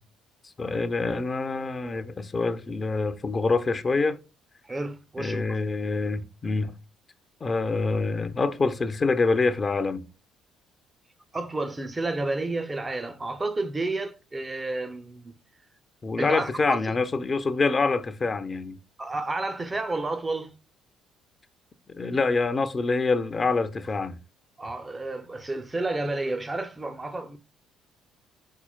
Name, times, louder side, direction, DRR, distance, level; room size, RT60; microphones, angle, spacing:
voice 1, 0.6-4.2 5.2-6.7 7.4-10.0 16.0-18.8 21.9-24.2, left 3 dB, 30° left, 0.5 m, -26 dB
voice 2, 4.6-5.6 11.3-15.3 16.2-17.0 19.0-20.5 24.6-27.4, right 2 dB, 20° right, 0.6 m, -31 dB
5.6 x 4.1 x 2.2 m
figure-of-eight pair, 50°, 0 cm